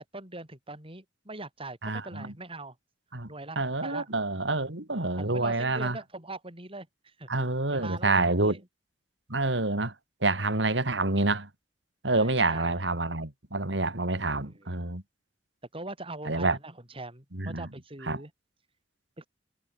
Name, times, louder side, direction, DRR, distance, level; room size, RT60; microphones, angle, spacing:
voice 1, 0.0-2.8 3.3-4.1 4.9-7.3 7.7-8.6 12.1-12.8 14.4-14.8 15.7-18.3 19.2-19.3, right 2 dB, 30° right, 7.7 m, -42 dB
voice 2, 1.8-2.3 3.1-3.3 3.5-6.0 7.3-8.6 9.3-9.9 10.2-11.5 12.0-15.0 16.2-16.6 17.3-17.7 18.1-18.2, right 2 dB, 85° right, 3.1 m, -27 dB
head